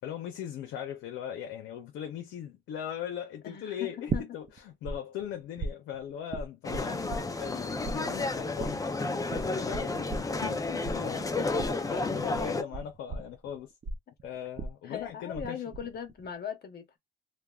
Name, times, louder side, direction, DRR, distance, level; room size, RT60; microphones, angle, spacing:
voice 1, 0.0-11.4 11.9-13.7 14.2-15.6, left 9 dB, 85° left, 0.6 m, -39 dB
voice 2, 3.4-4.2 11.4-11.8 14.8-17.0, left 8 dB, 55° left, 0.9 m, -39 dB
sound 1, 4.1-5.0 5.2-7.6 7.8-15.5 15.7-16.3, right 3 dB, 40° right, 0.5 m, -37 dB
sound 2, 6.6-12.6, left 3 dB, 15° left, 0.5 m, -31 dB
3.4 x 2.1 x 2.3 m
cardioid pair, 90°, 20 cm